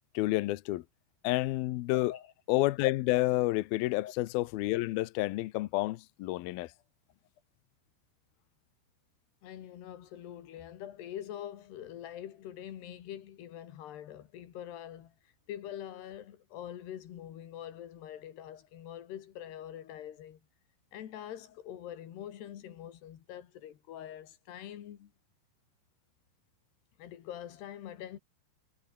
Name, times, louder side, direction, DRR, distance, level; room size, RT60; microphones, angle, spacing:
voice 1, 0.1-0.8 1.2-2.1 2.5-6.7, left 18 dB, 85° left, 2.2 m, -29 dB
voice 2, 9.4-20.4 20.9-25.1 27.0-28.2, left 11 dB, 65° left, 4.0 m, -44 dB
omnidirectional pair, 5.4 m